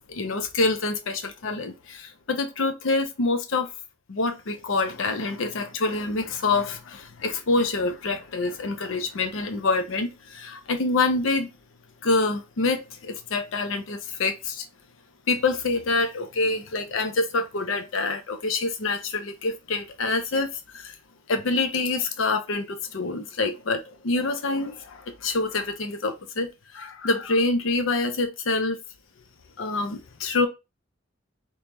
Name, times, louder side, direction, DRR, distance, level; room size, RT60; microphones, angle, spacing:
voice 1, 0.1-3.7 4.1-11.5 12.0-14.6 15.3-20.9 21.3-26.5 26.7-28.8 29.6-30.5, left 3 dB, 75° left, 0.6 m, -26 dB
3.0 x 2.9 x 3.5 m
head